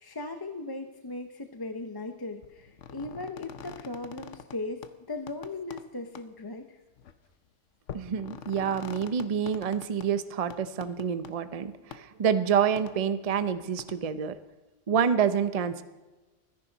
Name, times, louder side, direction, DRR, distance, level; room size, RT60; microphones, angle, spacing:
voice 1, 0.0-6.8, left 2 dB, 25° left, 6 dB, 0.7 m, -38 dB
sound 1, 2.4-4.6 4.8-4.9 5.3-5.8 6.2-6.3 7.0-7.1 7.9-10.1 10.5-11.3 11.9-12.0 12.8-12.9 13.8-13.9, left 8 dB, 80° left, 1.2 m, -44 dB
voice 2, 7.9-14.3 14.9-15.8, right 7 dB, 40° right, 11 dB, 0.6 m, -27 dB
23.5 x 10.5 x 4.0 m, 1.2 s
omnidirectional pair, 1.3 m